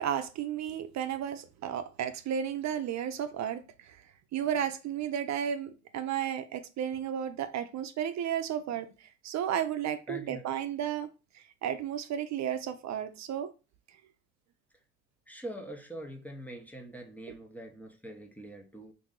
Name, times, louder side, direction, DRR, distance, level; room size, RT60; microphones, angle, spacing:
voice 1, 0.0-4.0 4.3-11.1 11.3-13.5, right 9 dB, 65° right, 0.5 m, -33 dB
voice 2, 10.1-10.4 15.3-18.9, right 1 dB, 5° left, 0.7 m, -43 dB
2.9 x 2.7 x 3.6 m
cardioid pair, 90°, 30 cm